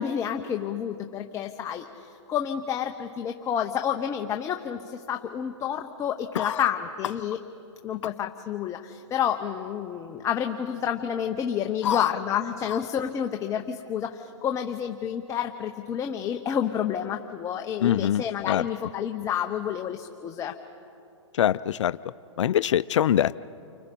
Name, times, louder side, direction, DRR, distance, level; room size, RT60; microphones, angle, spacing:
voice 1, 0.0-7.4 7.8-20.5, left 9 dB, 20° left, 5 dB, 0.8 m, -29 dB
voice 2, 17.8-18.6 21.3-22.0 22.4-23.4, left 10 dB, 70° left, 16 dB, 0.5 m, -24 dB
29.5 x 25.0 x 5.3 m, 2.8 s
hypercardioid pair, 135°, 16 cm